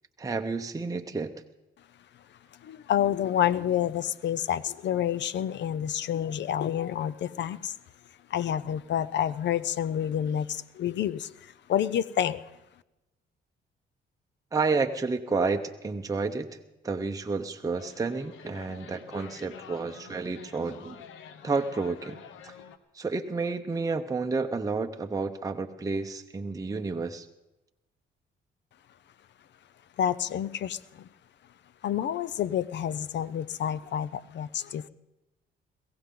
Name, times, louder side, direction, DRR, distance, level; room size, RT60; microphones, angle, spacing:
voice 1, 0.2-1.3 14.5-16.6 16.8-21.0 21.4-22.2 22.4-22.6 22.9-27.3, right 4 dB, 15° right, 5 dB, 0.8 m, -30 dB
voice 2, 2.6-7.7 8.3-12.4 30.0-31.1 31.8-34.9, left 10 dB, 65° left, 18 dB, 0.6 m, -29 dB
sound 1, 17.8-22.8, left 8 dB, 85° left, 1.0 m, -48 dB
21.5 x 16.5 x 3.8 m, 0.97 s
cardioid pair, 90°, 20 cm